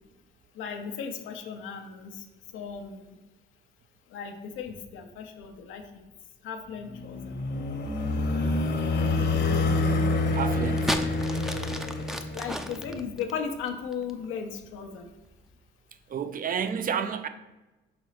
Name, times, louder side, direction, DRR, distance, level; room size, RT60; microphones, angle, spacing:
voice 1, 0.5-2.3 2.5-3.2 4.1-6.0 6.4-7.3 12.3-15.1, left 6 dB, 90° left, 0.8 m, -36 dB
sound 1, 6.9-12.7, left 2 dB, 60° left, 1.1 m, -27 dB
voice 2, 10.3-11.0 16.1-17.3, right 7 dB, 45° right, 0.6 m, -30 dB
sound 2, 10.6-14.2 15.1-15.4, equal, ahead, 0.6 m, -33 dB
6.2 x 4.0 x 4.9 m
cardioid pair, 90°, 20 cm